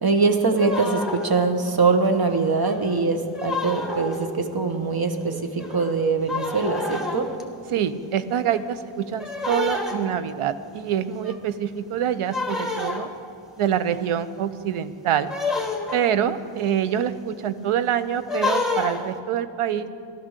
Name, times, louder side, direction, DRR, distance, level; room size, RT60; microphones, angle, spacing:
voice 1, 0.0-7.3, right 4 dB, 45° right, 6 dB, 1.4 m, -22 dB
sound 1, 0.6-1.5 2.0-2.1 2.6-4.4 5.2-5.3 5.6-6.0 6.3-7.4 8.3-8.7 9.2-10.3 11.2-11.4 12.2-13.3 15.3-16.1 18.2-19.2, left 3 dB, ahead, 1.7 m, -29 dB
voice 2, 7.7-13.1 13.6-15.3 15.9-19.9, right 9 dB, 90° right, 13 dB, 0.7 m, -25 dB
12.5 x 12.5 x 6.7 m, 2.3 s
cardioid pair, 55°, 50 cm